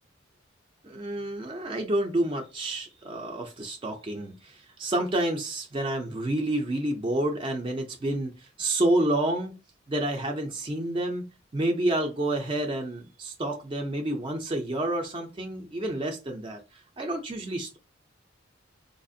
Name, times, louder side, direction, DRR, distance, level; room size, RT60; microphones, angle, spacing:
voice 1, 0.8-9.5 9.9-11.3 11.5-17.8, right 1 dB, 25° right, 2 dB, 0.4 m, -29 dB
4.3 x 2.4 x 2.6 m, 0.29 s
head